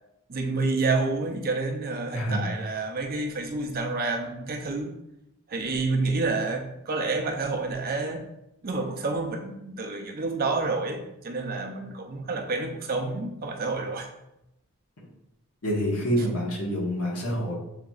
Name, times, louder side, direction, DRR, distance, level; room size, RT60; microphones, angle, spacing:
voice 1, 0.3-4.9 5.5-8.2 8.6-14.1, right 3 dB, 45° right, 3 dB, 0.6 m, -29 dB
voice 2, 2.1-2.5 15.6-17.5, equal, 80° left, -3 dB, 1.4 m, -27 dB
7.1 x 2.9 x 2.4 m, 0.86 s
head